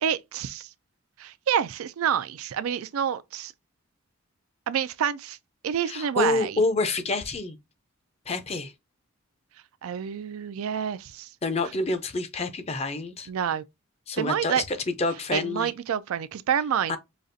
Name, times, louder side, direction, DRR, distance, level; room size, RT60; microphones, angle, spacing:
voice 1, 0.0-0.7 1.2-3.5 4.7-5.4 5.6-6.6 9.8-11.3 13.3-13.6 14.2-14.6 15.3-17.0, right 8 dB, 85° right, 0.4 m, -28 dB
voice 2, 5.9-7.6 8.3-8.7 11.4-13.3 14.1-15.7 16.9-17.0, left 3 dB, 30° left, 0.5 m, -28 dB
5.1 x 2.4 x 2.6 m
head